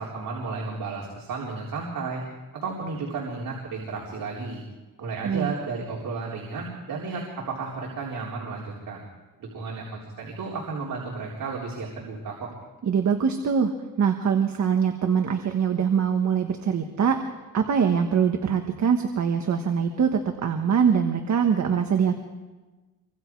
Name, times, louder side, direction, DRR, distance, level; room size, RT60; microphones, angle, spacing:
voice 1, 0.0-2.2 2.5-4.6 5.0-9.0 9.4-12.5, right 4 dB, 75° right, -3 dB, 4.0 m, -33 dB
voice 2, 5.2-5.6 12.9-17.2 17.5-22.1, right 7 dB, 55° right, 5 dB, 1.5 m, -23 dB
27.0 x 24.5 x 4.8 m, 1.2 s
wide cardioid pair, 155°, 34 cm